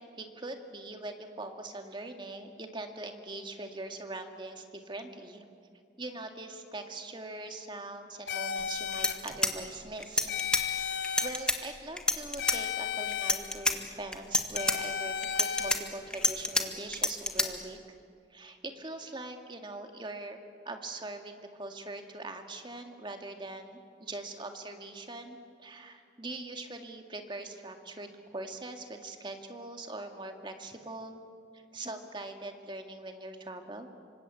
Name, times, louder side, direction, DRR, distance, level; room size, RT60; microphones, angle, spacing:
voice 1, 0.0-5.4 6.0-10.3 11.2-17.8 18.3-20.4 20.6-31.2 31.5-33.9, right 2 dB, 25° right, 5 dB, 2.0 m, -42 dB
sound 1, 8.3-9.1 10.3-11.3 12.4-13.3 14.5-15.7, left 7 dB, 80° left, 2.4 m, -34 dB
sound 2, 8.6-8.7 8.9-10.6 11.0-11.6 12.0-12.6 13.1-13.7 14.1-14.8 15.2-16.6 16.9-17.5, left 2 dB, 5° left, 1.7 m, -28 dB
27.5 x 25.0 x 8.5 m, 2.3 s
head